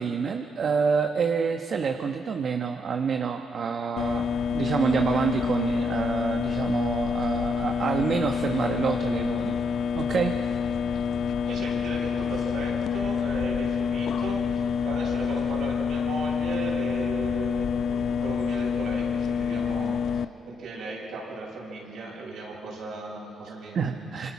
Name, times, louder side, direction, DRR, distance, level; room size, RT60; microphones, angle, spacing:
voice 1, 0.0-9.6 9.9-10.3 23.7-24.3, right 6 dB, 55° right, 5 dB, 1.2 m, -27 dB
sound 1, 4.0-20.2, left 7 dB, 65° left, 0.6 m, -27 dB
voice 2, 11.5-24.1, right 3 dB, 75° right, -2 dB, 7.4 m, -37 dB
26.5 x 25.5 x 6.1 m, 2.6 s
cardioid pair, 90°, 0 cm